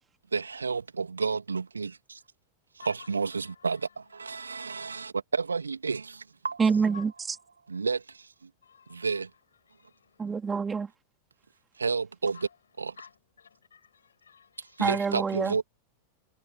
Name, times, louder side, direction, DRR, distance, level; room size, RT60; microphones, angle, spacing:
voice 1, 0.3-2.2 2.8-6.2 6.4-6.6 7.7-8.5 8.9-9.3 11.8-12.5 12.8-13.0 14.6-15.6, right 5 dB, 75° right, 2.4 m, -31 dB
voice 2, 6.6-7.4 10.2-10.9 14.8-15.6, right 5 dB, 15° right, 3.8 m, -26 dB
voice 3, 8.6-9.2 9.7-10.1 12.3-12.5 13.0-13.1 13.4-14.8, left 7 dB, 70° left, 7.4 m, -52 dB
figure-of-eight pair, 90°, 0 cm